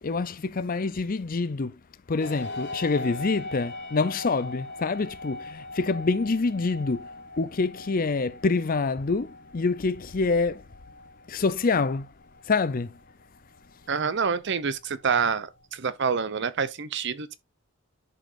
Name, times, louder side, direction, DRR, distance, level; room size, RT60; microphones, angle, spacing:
voice 1, 0.0-1.8 2.1-7.1 7.4-10.6 11.3-12.1 12.5-13.0, left 4 dB, 45° left, 0.5 m, -26 dB
sound 1, 2.2-15.8, left 2 dB, 60° left, 2.3 m, -42 dB
voice 2, 13.9-17.4, right 6 dB, 60° right, 0.7 m, -27 dB
11.0 x 5.2 x 2.6 m
head